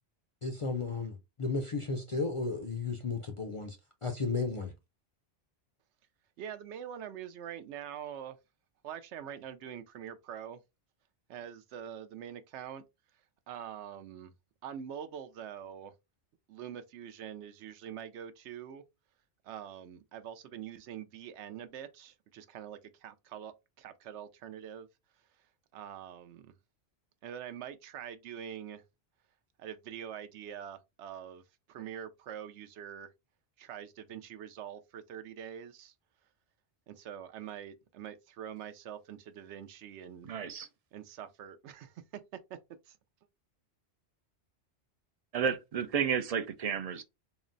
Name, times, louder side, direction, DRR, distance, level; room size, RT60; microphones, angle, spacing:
voice 1, 0.4-3.8 4.0-4.7, left 4 dB, 50° left, 0.4 m, -34 dB
voice 2, 6.4-8.4 8.8-10.6 11.3-12.8 13.5-14.3 14.6-15.9 16.5-18.8 19.4-24.9 25.7-26.5 27.2-28.8 29.6-31.4 31.7-33.1 33.6-35.9 36.9-40.3 40.9-42.2 42.5-42.6 42.9-43.0, right 9 dB, 85° right, 0.9 m, -44 dB
voice 3, 40.3-40.7 45.3-47.0, right 7 dB, 60° right, 0.4 m, -31 dB
3.8 x 2.1 x 3.8 m
omnidirectional pair, 1.1 m